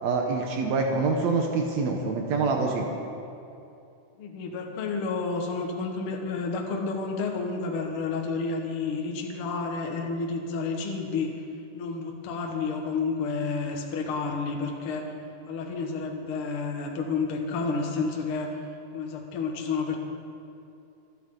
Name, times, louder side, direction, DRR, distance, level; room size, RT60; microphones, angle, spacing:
voice 1, 0.0-2.8, right 4 dB, 90° right, 1 dB, 1.5 m, -26 dB
voice 2, 4.2-11.3 11.7-15.1 15.5-18.5 18.9-20.0, left 4 dB, 65° left, 1 dB, 1.3 m, -30 dB
26.5 x 10.0 x 3.9 m, 2.7 s
omnidirectional pair, 4.7 m